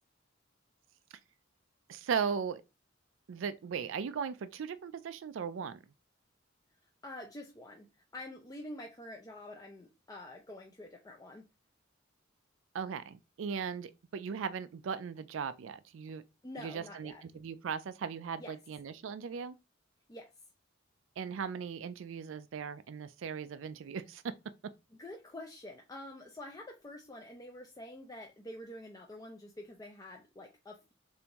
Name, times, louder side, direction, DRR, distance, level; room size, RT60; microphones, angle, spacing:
voice 1, 1.9-2.6 3.3-5.8 12.7-16.2 16.6-19.5 21.2-24.3, right 6 dB, 75° right, 0.4 m, -38 dB
voice 2, 7.0-11.4 16.4-17.2 18.4-18.5 20.1-20.3 25.0-30.9, left 1 dB, 20° left, 0.5 m, -47 dB
6.8 x 2.6 x 2.9 m
head